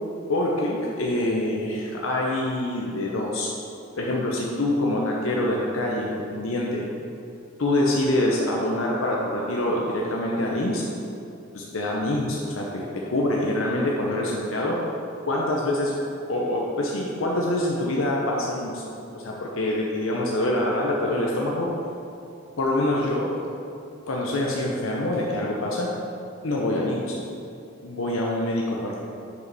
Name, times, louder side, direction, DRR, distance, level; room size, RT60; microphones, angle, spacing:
voice 1, 0.3-3.5 3.9-6.9 7.6-10.8 11.5-14.8 15.3-15.9 16.3-18.8 19.1-21.7 22.6-23.3 24.1-25.9 26.4-27.1 27.8-29.0, left 1 dB, 80° left, -2 dB, 0.8 m, -25 dB
7.0 x 5.0 x 4.8 m, 2.7 s
head